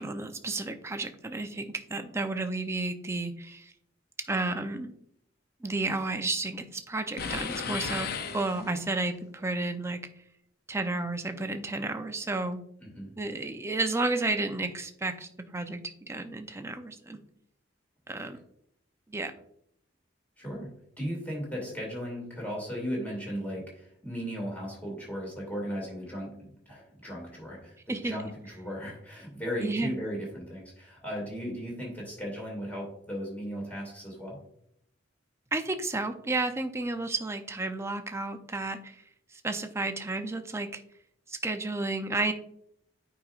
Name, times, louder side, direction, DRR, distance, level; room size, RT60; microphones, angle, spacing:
voice 1, 0.0-3.7 4.3-4.9 5.6-10.0 10.7-12.6 13.2-17.2 18.1-18.4 19.1-19.3 27.9-28.2 29.6-29.9 35.5-39.0 39.3-40.8 41.3-42.3, right 2 dB, 15° right, 7 dB, 0.5 m, -32 dB
sound 1, 7.2-9.0, left 5 dB, 55° left, 0.6 m, -35 dB
voice 2, 12.8-13.1 20.4-34.4, equal, 10° left, -2 dB, 2.4 m, -36 dB
9.0 x 4.9 x 2.5 m, 0.72 s
head